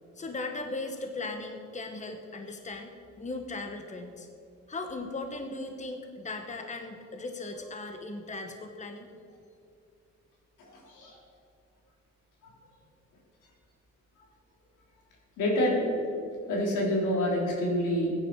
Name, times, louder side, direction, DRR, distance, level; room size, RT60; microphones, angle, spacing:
voice 1, 0.2-4.3 4.7-9.1, left 2 dB, 25° left, 5 dB, 1.2 m, -38 dB
voice 2, 10.9-11.2 15.4-15.9 16.5-18.1, equal, 90° left, -2 dB, 3.5 m, -27 dB
15.0 x 10.0 x 4.7 m, 2.6 s
cardioid pair, 90°, 30 cm